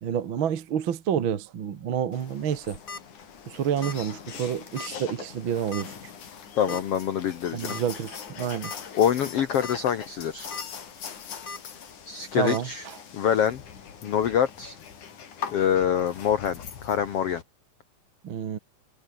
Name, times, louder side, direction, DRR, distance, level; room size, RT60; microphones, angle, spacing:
voice 1, 0.0-2.8 3.5-5.9 6.7-6.8 7.5-8.7 12.3-13.0 18.2-18.6, right 8 dB, 55° right, 1.4 m, -29 dB
sound 1, 2.1-17.4, left 7 dB, 55° left, 4.1 m, -42 dB
sound 2, 2.6-3.0 3.8-4.1 4.3-4.4 4.8-4.9 5.7-6.0 6.7-6.8 7.7-7.8 8.3-8.4 8.6-8.8 9.4-9.8 10.2-10.6 11.5-11.6 12.5-12.6, left 4 dB, 25° left, 2.4 m, -38 dB
voice 2, 6.5-7.8 8.9-10.5 12.0-12.9 13.1-13.6 14.0-14.8 15.5-17.4, left 9 dB, 85° left, 1.3 m, -25 dB
omnidirectional pair, 4.5 m